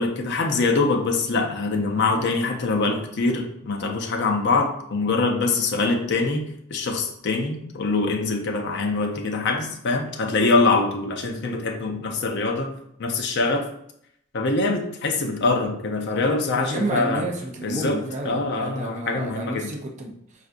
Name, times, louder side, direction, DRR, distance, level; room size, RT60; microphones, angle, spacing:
voice 1, 0.0-6.4 6.7-12.7 13.0-13.7 14.3-17.3 17.6-18.0 18.2-19.7, left 3 dB, 55° left, 2 dB, 0.5 m, -24 dB
voice 2, 16.5-20.5, right 2 dB, 35° right, 0 dB, 0.5 m, -31 dB
4.4 x 2.5 x 2.4 m, 0.73 s
head